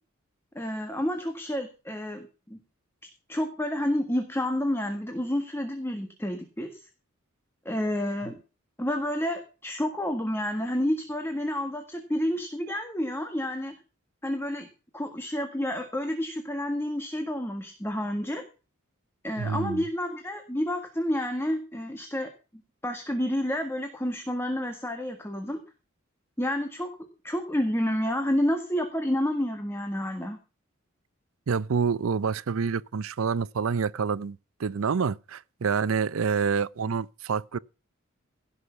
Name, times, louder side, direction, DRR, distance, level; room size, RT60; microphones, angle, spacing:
voice 1, 0.5-2.6 3.3-6.9 7.6-8.4 8.8-13.7 14.2-14.7 14.9-18.4 19.2-22.3 22.8-25.6 26.4-26.9 27.2-30.4, left 1 dB, 10° left, 1.6 m, -29 dB
voice 2, 19.4-19.8 31.5-37.6, right 5 dB, 90° right, 0.5 m, -27 dB
16.5 x 6.4 x 5.8 m
head